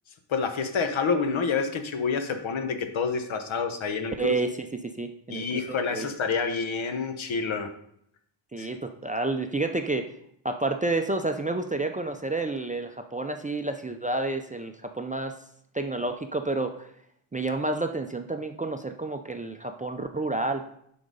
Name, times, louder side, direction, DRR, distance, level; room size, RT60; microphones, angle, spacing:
voice 1, 0.3-4.3 5.3-7.7 8.6-8.7, left 5 dB, 75° left, 7 dB, 1.1 m, -28 dB
voice 2, 4.2-4.5 4.8-6.1 8.5-10.1 10.4-15.3 15.7-16.9 17.3-20.6, right 2 dB, 20° right, 5 dB, 0.3 m, -30 dB
9.7 x 3.9 x 5.3 m, 0.70 s
wide cardioid pair, 150°, 47 cm